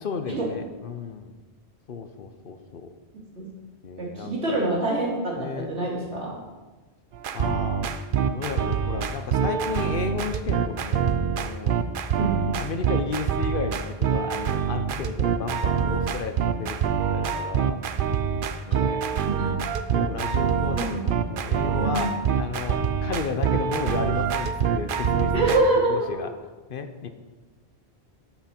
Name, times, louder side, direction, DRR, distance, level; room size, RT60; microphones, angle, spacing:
voice 1, 0.0-1.3 1.9-2.9 3.8-4.7 5.4-5.7 7.3-7.9 8.3-11.8 12.6-17.8 18.6-19.1 19.9-26.3 26.7-27.1, left 5 dB, 55° left, 8 dB, 0.9 m, -33 dB
voice 2, 4.0-6.4 12.2-12.3 19.2-19.5 20.8-20.9 21.8-22.1 25.3-26.2, right 2 dB, 85° right, -4 dB, 2.9 m, -25 dB
sound 1, 7.1-25.6, right 7 dB, 60° right, 0.7 m, -25 dB
13.0 x 5.9 x 4.4 m, 1.2 s
omnidirectional pair, 1.1 m